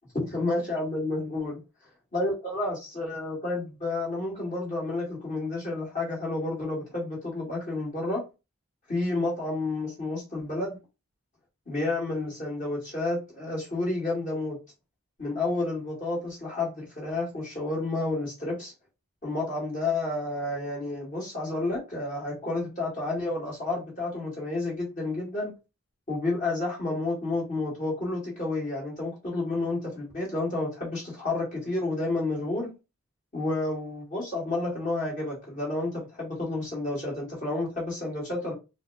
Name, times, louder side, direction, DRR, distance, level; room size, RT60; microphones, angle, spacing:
voice 1, 0.1-1.6 2.1-8.2 8.9-10.8 11.7-14.6 15.2-18.7 19.2-25.5 26.1-32.7 33.3-38.5, left 2 dB, 35° left, 1.9 m, -30 dB
4.0 x 2.2 x 3.3 m
head